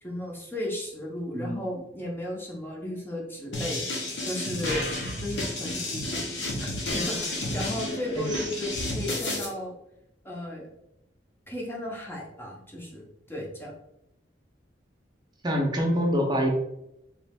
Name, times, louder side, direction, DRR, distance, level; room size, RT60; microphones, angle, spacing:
voice 1, 0.0-6.3 6.6-6.7 6.9-9.7 10.2-10.7 11.5-13.7, left 1 dB, 10° left, -2 dB, 0.8 m, -35 dB
sound 1, 3.5-9.4, left 1 dB, 75° left, 1.1 m, -31 dB
voice 2, 8.2-8.5 15.4-16.5, equal, 25° right, 1 dB, 0.8 m, -26 dB
3.2 x 3.1 x 3.5 m, 0.83 s
head